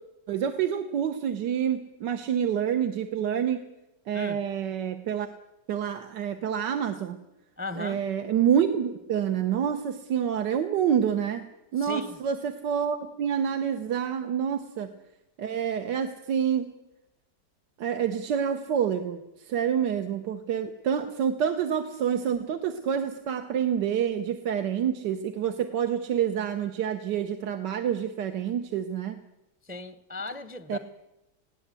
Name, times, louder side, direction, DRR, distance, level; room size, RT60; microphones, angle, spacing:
voice 1, 0.3-3.6 4.1-5.3 5.7-7.2 7.7-14.9 15.4-16.7 17.8-29.2 30.7-30.8, right 8 dB, 85° right, 7 dB, 1.6 m, -27 dB
voice 2, 7.6-8.0 11.8-12.2 29.7-30.8, left 3 dB, 10° right, 12 dB, 0.4 m, -37 dB
20.0 x 17.0 x 8.2 m, 0.94 s
omnidirectional pair, 1.8 m